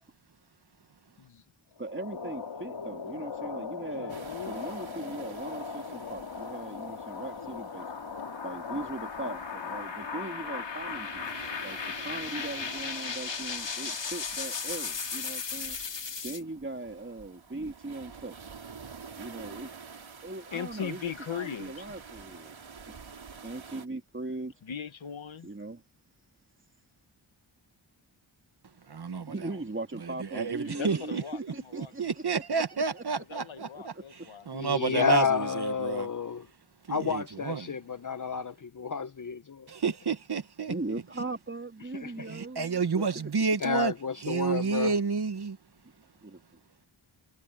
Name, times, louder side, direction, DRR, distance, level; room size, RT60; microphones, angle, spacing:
sound 1, 1.8-16.4, left 5 dB, 65° left, 2.8 m, -37 dB
voice 1, 1.8-4.1 4.5-7.9 8.4-11.2 11.6-15.8 16.2-18.4 19.2-19.7 20.2-22.6 22.9-23.0 23.4-24.5 25.4-25.8 29.2-32.0 32.5-33.0 33.3-33.4 33.7-34.0 40.7-43.3 46.2-46.6, right 2 dB, 25° right, 3.0 m, -39 dB
voice 2, 3.9-4.6 20.5-21.9 24.6-25.5 30.6-32.1 33.3-34.5, left 8 dB, 80° left, 1.6 m, -39 dB
sound 2, 4.1-23.9, right 5 dB, 80° right, 4.2 m, -49 dB
voice 3, 28.9-29.3 30.0-31.2 31.7-33.9 34.5-36.1 36.9-37.7 39.7-41.0 42.3-43.9 44.2-45.6, right 5 dB, 55° right, 1.5 m, -30 dB
voice 4, 34.5-36.5 36.9-39.7 42.0-42.3 43.6-44.9, left 6 dB, 40° left, 0.7 m, -30 dB
wide cardioid pair, 90°, 47 cm